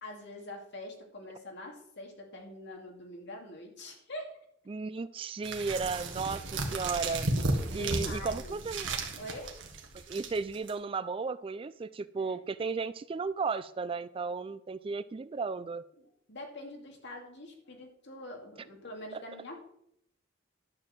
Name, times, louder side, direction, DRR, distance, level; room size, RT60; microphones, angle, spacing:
voice 1, 0.0-4.4 7.7-8.6 9.2-9.6 12.3-12.4 16.0-19.6, left 1 dB, 60° left, 2 dB, 2.5 m, -45 dB
voice 2, 4.7-9.0 9.9-15.8 19.1-19.2, right 4 dB, 30° right, 15 dB, 0.3 m, -35 dB
sound 1, 5.4-10.7, right 2 dB, 65° right, 1.6 m, -34 dB
11.0 x 4.7 x 7.5 m, 0.71 s
head